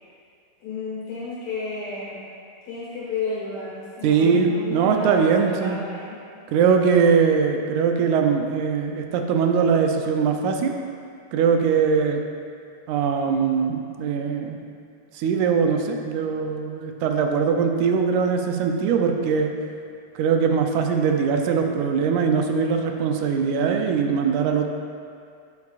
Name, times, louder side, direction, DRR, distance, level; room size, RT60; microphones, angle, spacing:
voice 1, 0.6-2.2 2.6-6.2, left 3 dB, 70° left, -8 dB, 2.5 m, -32 dB
voice 2, 4.0-5.8 6.5-10.7 11.3-12.2 12.9-14.6 15.1-19.5 20.2-24.7, right 6 dB, 90° right, 4 dB, 2.1 m, -21 dB
9.5 x 8.2 x 2.4 m, 2.3 s
omnidirectional pair, 3.3 m